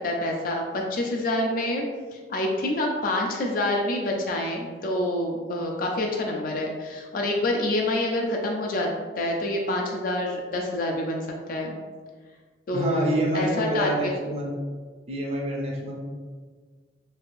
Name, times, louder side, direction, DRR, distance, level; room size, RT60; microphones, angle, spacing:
voice 1, 0.0-11.8 12.7-14.1, left 1 dB, 50° left, 0 dB, 0.4 m, -27 dB
voice 2, 12.7-14.5 15.1-16.0, right 1 dB, 35° right, -2 dB, 0.5 m, -27 dB
3.2 x 2.5 x 2.5 m, 1.5 s
head